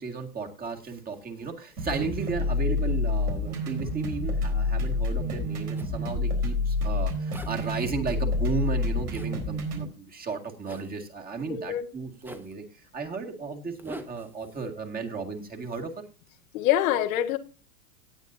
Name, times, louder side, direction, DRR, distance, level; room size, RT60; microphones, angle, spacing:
voice 1, 0.0-15.9, right 4 dB, 20° right, 2 dB, 2.1 m, -34 dB
sound 1, 1.8-9.8, left 2 dB, 85° right, 4.2 m, -28 dB
Zipper (clothing), 5.8-5.9 7.3-7.8 9.1-9.3 10.6-10.9 12.2-12.5 13.8-14.7, right 1 dB, 5° right, 0.9 m, -45 dB
voice 2, 11.5-11.9 16.5-17.4, left 12 dB, 65° left, 7 dB, 1.5 m, -25 dB
18.0 x 8.3 x 2.7 m, 0.32 s
hypercardioid pair, 115°, 44 cm